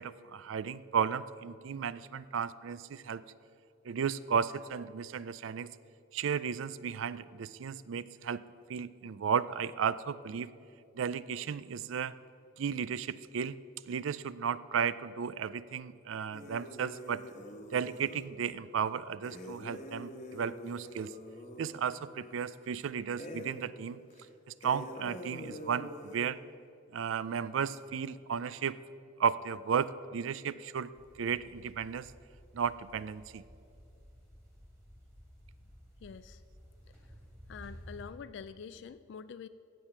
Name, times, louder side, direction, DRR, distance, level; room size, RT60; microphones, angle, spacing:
voice 1, 0.0-3.2 3.9-5.7 6.1-8.4 8.7-10.5 11.0-12.1 12.6-13.6 13.9-17.2 17.7-21.1 21.6-24.0 24.6-26.4 26.9-28.8 29.2-30.9 31.2-32.1 32.5-33.4, right 7 dB, 75° right, 17 dB, 0.4 m, -34 dB
sound 1, 16.3-18.3 19.2-22.8 23.2-23.7 24.1-24.2 24.6-26.3, equal, 35° left, 1.1 m, -45 dB
sound 2, 30.9-38.0, equal, 10° right, 2.7 m, -54 dB
voice 2, 36.0-36.4 37.5-39.5, left 6 dB, 60° left, 13 dB, 0.3 m, -46 dB
15.5 x 7.4 x 5.9 m, 2.5 s
head